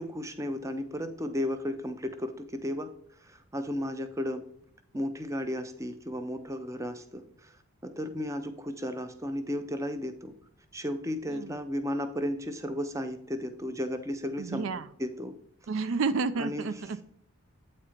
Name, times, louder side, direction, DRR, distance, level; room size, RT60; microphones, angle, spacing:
voice 1, 0.0-2.9 3.2-4.4 4.9-7.5 7.8-10.3 10.7-14.7 15.0-15.4 16.4-16.7, left 1 dB, 15° right, 8 dB, 0.6 m, -34 dB
voice 2, 11.3-11.6 14.4-14.9 15.7-17.0, right 4 dB, 60° right, 12 dB, 0.4 m, -31 dB
8.5 x 4.3 x 5.0 m, 0.68 s
head